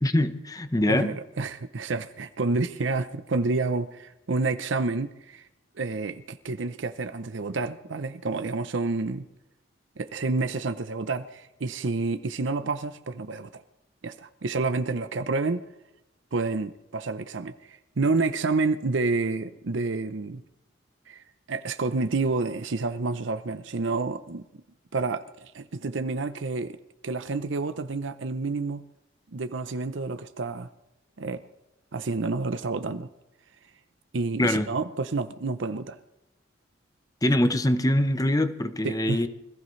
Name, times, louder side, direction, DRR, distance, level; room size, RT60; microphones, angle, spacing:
voice 1, 0.0-1.1 34.4-34.7 37.2-39.3, left 1 dB, 20° left, 0.8 m, -23 dB
voice 2, 0.9-5.5 5.8-9.2 10.0-13.6 14.0-15.6 16.3-20.4 21.1-24.4 24.9-26.8 27.0-28.8 29.3-30.7 31.2-31.4 31.9-33.1 34.1-36.0 38.8-39.2, right 3 dB, 70° right, 0.7 m, -29 dB
25.5 x 15.5 x 3.2 m
head